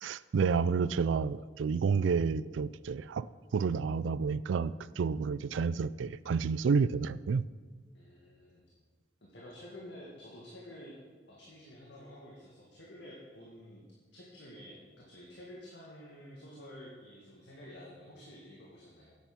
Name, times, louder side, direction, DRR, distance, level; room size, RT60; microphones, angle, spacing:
voice 1, 0.0-3.3 3.5-7.5, right 5 dB, 85° right, 18 dB, 0.4 m, -30 dB
voice 2, 7.9-8.7 9.2-11.0 11.3-13.8 14.1-19.2, left 1 dB, 70° left, -4 dB, 2.0 m, -50 dB
10.0 x 8.6 x 6.0 m, 1.5 s
head